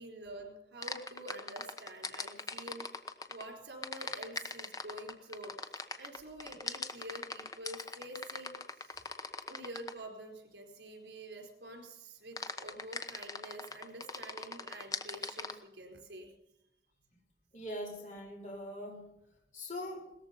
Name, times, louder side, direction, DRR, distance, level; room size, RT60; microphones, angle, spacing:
voice 1, 0.0-9.1 9.5-16.3, right 1 dB, 75° right, 3 dB, 4.4 m, -48 dB
sound 1, 0.8-3.4 3.8-10.0 12.4-15.5, left 4 dB, 20° left, 1.0 m, -40 dB
voice 2, 17.5-19.1 19.5-20.1, left 1 dB, 45° left, -1 dB, 3.8 m, -42 dB
18.0 x 14.0 x 5.4 m, 0.86 s
head